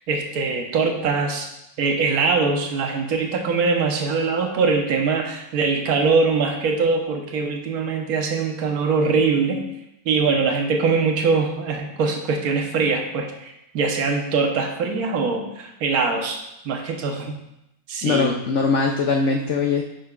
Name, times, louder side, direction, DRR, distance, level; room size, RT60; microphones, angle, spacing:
voice 1, 0.1-1.5 1.8-9.6 10.0-17.4 17.9-18.4, right 4 dB, 60° right, 2 dB, 1.3 m, -22 dB
voice 2, 18.0-19.8, left 4 dB, 70° left, 2 dB, 0.7 m, -21 dB
9.8 x 6.0 x 2.4 m, 0.85 s
omnidirectional pair, 1.9 m